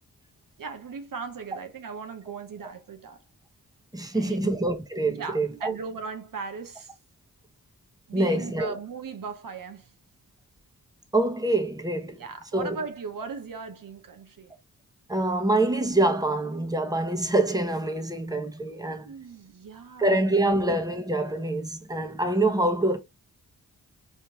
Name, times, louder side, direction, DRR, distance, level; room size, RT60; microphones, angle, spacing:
voice 1, 0.6-3.2 4.1-4.5 5.1-6.9 8.1-9.9 12.1-14.5 19.0-20.2, right 5 dB, 65° right, 0.9 m, -38 dB
voice 2, 3.9-5.7 8.1-8.7 11.1-12.2 12.5-12.8 15.1-19.1 20.0-23.0, right 2 dB, 10° right, 1.1 m, -25 dB
4.3 x 3.4 x 2.9 m
cardioid pair, 60°, 36 cm